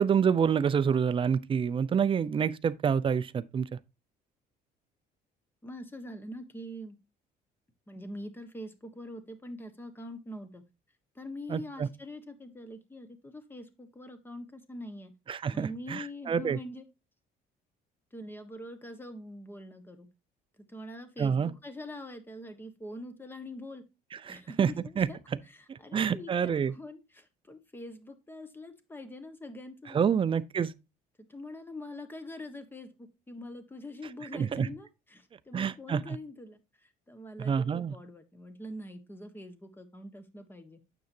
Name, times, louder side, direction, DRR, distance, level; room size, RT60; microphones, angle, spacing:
voice 1, 0.0-3.7 11.5-11.9 15.3-16.6 21.2-21.5 24.3-24.7 25.0-25.1 25.7-26.7 29.9-30.7 34.3-34.7 35.5-36.2 37.4-37.9, right 7 dB, 30° right, 0.5 m, -27 dB
voice 2, 5.6-7.0 7.9-10.6 11.1-15.1 15.5-16.8 18.1-20.1 20.6-23.8 24.3-25.2 25.5-30.0 31.2-40.8, left 1 dB, 10° left, 1.4 m, -44 dB
9.2 x 7.1 x 2.7 m
cardioid pair, 110°, 17 cm